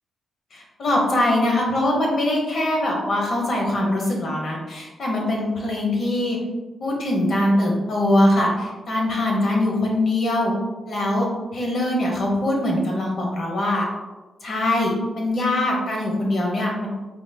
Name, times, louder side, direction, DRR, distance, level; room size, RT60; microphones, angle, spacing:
voice 1, 0.5-6.4 6.8-10.5 10.8-11.3 11.5-13.9 14.4-16.9, left 1 dB, 60° left, -1 dB, 0.9 m, -22 dB
4.5 x 2.2 x 2.2 m, 1.2 s
supercardioid pair, 50°, 0 cm